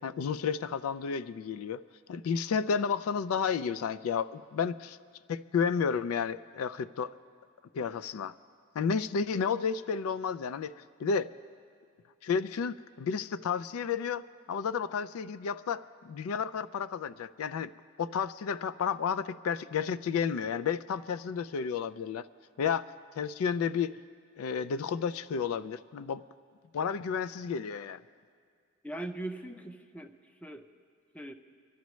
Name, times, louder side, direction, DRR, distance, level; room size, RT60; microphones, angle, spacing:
voice 1, 0.0-1.8 2.1-5.0 5.3-7.1 7.7-8.3 8.8-10.7 11.0-11.3 12.2-17.7 18.0-22.3 22.6-22.9 23.2-23.9 24.4-26.2 26.7-28.0, left 6 dB, 85° left, 16 dB, 0.3 m, -31 dB
voice 2, 28.8-30.1 30.4-30.6 31.1-31.3, right 1 dB, 5° left, 7 dB, 0.5 m, -40 dB
26.0 x 11.5 x 3.1 m, 2.1 s
head